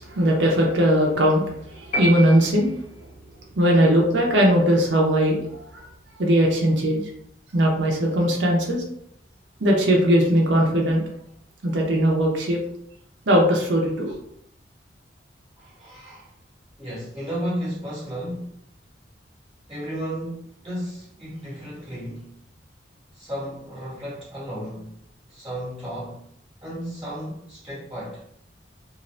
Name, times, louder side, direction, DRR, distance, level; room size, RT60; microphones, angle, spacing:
voice 1, 0.0-2.7 3.6-5.9 6.2-7.0 7.5-8.8 9.6-11.0 11.6-12.6 13.3-14.1, equal, 80° right, 0.6 m, -19 dB
sound 1, 1.9-3.2, equal, 40° left, 0.5 m, -29 dB
voice 2, 15.5-16.3 16.8-18.6 19.7-22.3 23.1-25.0 25.3-26.2 26.6-28.2, equal, 20° right, 1.0 m, -33 dB
2.6 x 2.5 x 3.1 m
head